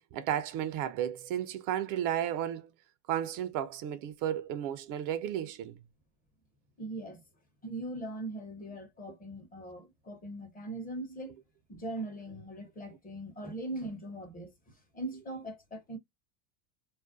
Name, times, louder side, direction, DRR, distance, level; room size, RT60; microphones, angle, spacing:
voice 1, 0.1-2.7 3.1-5.8, right 10 dB, 50° right, 0.4 m, -33 dB
voice 2, 6.8-7.2 7.6-11.4 11.7-14.5 14.9-16.0, right 1 dB, 20° left, 0.7 m, -40 dB
2.4 x 2.1 x 2.5 m
supercardioid pair, 110°, 39 cm